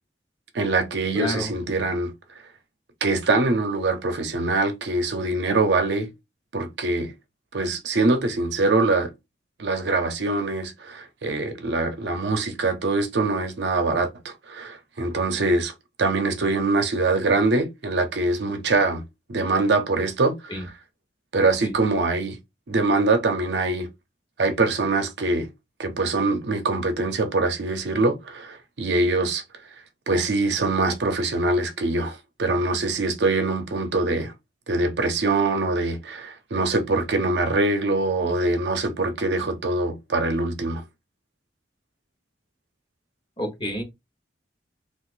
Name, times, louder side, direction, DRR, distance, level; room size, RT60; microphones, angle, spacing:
voice 1, 0.5-2.1 3.0-6.1 6.5-7.1 7.5-9.1 9.6-15.7 16.0-19.0 19.3-20.7 21.3-22.4 22.7-23.9 24.4-25.5 25.8-29.4 30.1-34.3 34.7-40.8, right 2 dB, 70° right, 0.7 m, -23 dB
voice 2, 1.1-1.5 20.5-20.7 21.6-21.7 43.4-43.8, equal, 30° left, 1.1 m, -29 dB
3.9 x 2.4 x 2.5 m
head